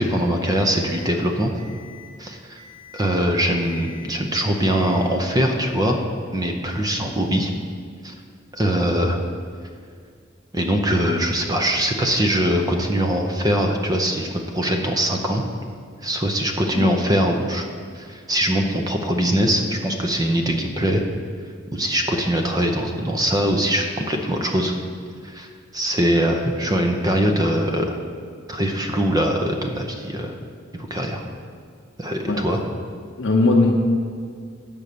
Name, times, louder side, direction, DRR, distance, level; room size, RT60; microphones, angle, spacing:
voice 1, 0.0-1.5 2.2-2.6 2.9-6.0 6.3-7.5 8.0-8.1 8.5-9.2 10.5-15.4 16.0-17.7 17.9-21.0 21.7-24.7 25.2-25.5 25.7-28.0 28.5-30.4 30.8-31.2 32.0-32.6, equal, 20° right, 3 dB, 0.6 m, -22 dB
Alarm, 0.6-1.1 1.6-2.1 2.6-3.1 3.6-4.1 4.6-5.1, left 7 dB, 35° right, 2.0 m, -46 dB
voice 2, 33.2-33.7, left 2 dB, 80° left, -1 dB, 0.7 m, -18 dB
7.3 x 5.3 x 6.7 m, 2.1 s
head